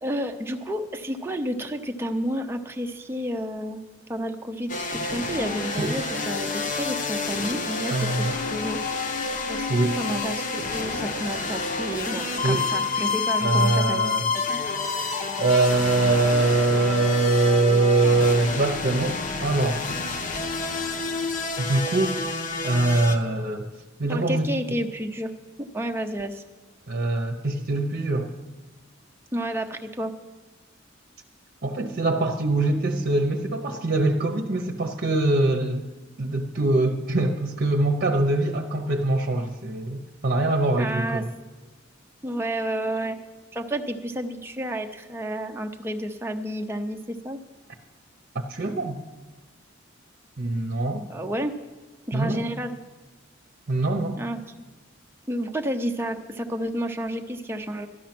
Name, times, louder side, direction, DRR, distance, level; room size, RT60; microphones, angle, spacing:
voice 1, 0.0-3.8 4.1-8.8 9.5-9.7 10.0-14.6 24.0-25.3 25.6-26.4 29.3-30.1 40.8-41.3 42.2-43.2 43.5-47.4 51.1-51.6 52.1-52.8 54.2-54.4 55.3-57.9, equal, 10° right, 4 dB, 0.6 m, -30 dB
sound 1, 4.7-23.2, left 4 dB, 40° left, 1.0 m, -29 dB
voice 2, 7.9-8.4 9.7-10.0 12.4-12.7 13.4-14.3 15.0-19.8 21.6-22.2 22.6-23.7 24.0-24.5 26.9-28.3 31.6-35.8 36.2-41.3 48.5-49.0 50.4-51.0 52.1-52.5 53.7-54.2, right 2 dB, 50° right, 4 dB, 0.8 m, -23 dB
12.5 x 10.5 x 6.0 m, 1.2 s
head